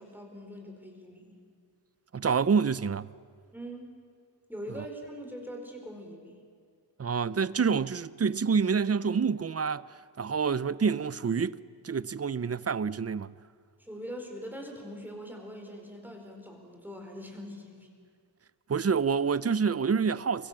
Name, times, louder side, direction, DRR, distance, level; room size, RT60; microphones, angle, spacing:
voice 1, 0.0-1.4 3.5-3.9 4.5-6.5 13.8-17.9, equal, 5° right, 4.6 m, -42 dB
voice 2, 2.1-3.1 7.0-9.8 10.2-13.3 18.7-20.5, right 6 dB, 35° right, 0.6 m, -27 dB
28.5 x 24.5 x 7.5 m
wide cardioid pair, 130°, 41 cm